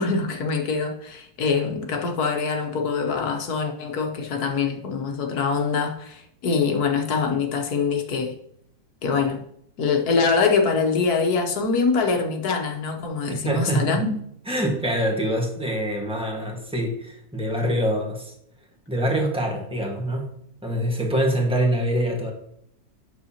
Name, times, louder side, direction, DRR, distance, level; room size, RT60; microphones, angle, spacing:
voice 1, 0.0-8.3 9.0-9.4 9.8-14.1, left 5 dB, 80° left, 1.6 m, -24 dB
voice 2, 13.3-14.0 14.5-18.3 18.9-20.3 20.6-22.3, equal, 5° right, 1.4 m, -25 dB
9.1 x 6.7 x 2.9 m
omnidirectional pair, 1.6 m